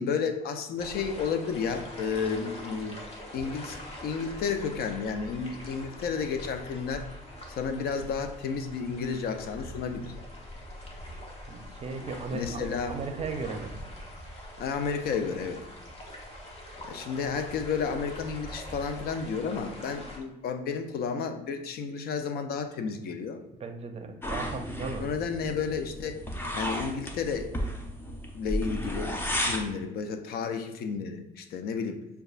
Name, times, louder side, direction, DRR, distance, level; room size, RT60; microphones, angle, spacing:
voice 1, 0.0-3.0 3.3-3.8 4.0-7.1 7.5-10.1 12.3-13.0 14.6-15.6 16.9-23.4 25.0-26.2 26.5-27.5 28.3-32.0, left 5 dB, 65° left, 7 dB, 0.5 m, -32 dB
sound 1, 0.8-20.2, left 1 dB, 40° left, 1.0 m, -43 dB
voice 2, 11.5-13.7 23.6-25.1, right 4 dB, 40° right, 6 dB, 0.5 m, -36 dB
sound 2, 24.2-29.7, equal, 15° left, 0.6 m, -33 dB
6.4 x 2.3 x 2.4 m, 0.93 s
cardioid pair, 110°, 17 cm